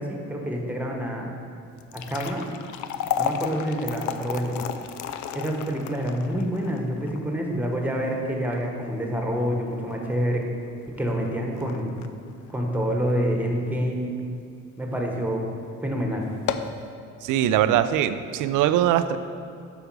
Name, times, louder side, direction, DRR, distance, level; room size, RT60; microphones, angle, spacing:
voice 1, 0.0-1.3 1.9-2.5 3.1-4.5 5.3-10.4 11.0-11.9 12.5-14.1 14.8-15.4 15.8-16.3, equal, 5° right, 0 dB, 1.2 m, -27 dB
sound 1, 1.7-14.0 14.4-14.5 15.2-15.4 15.7-15.8 16.3-16.8, left 9 dB, 75° left, 0.5 m, -34 dB
voice 2, 17.2-19.2, right 11 dB, 85° right, 12 dB, 0.5 m, -21 dB
8.1 x 5.1 x 4.7 m, 2.6 s
cardioid pair, 90°, 30 cm